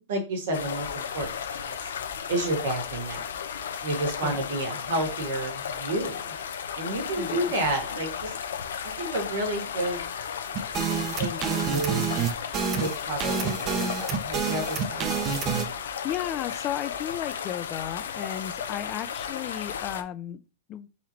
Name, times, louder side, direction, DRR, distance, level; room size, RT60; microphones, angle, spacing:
voice 1, 0.0-1.8 2.3-3.2 3.8-6.3 6.8-8.3 8.8-10.0 11.2-12.1 12.7-15.3, right 1 dB, 75° right, 1.9 m, -31 dB
sound 1, 0.5-20.0, left 7 dB, 90° left, 0.6 m, -34 dB
voice 2, 7.2-7.5 16.0-20.4 20.7-20.9, left 11 dB, 35° left, 0.5 m, -34 dB
sound 2, 10.5-15.7, right 7 dB, 35° right, 0.7 m, -28 dB
4.0 x 3.1 x 4.3 m
hypercardioid pair, 125°, 0 cm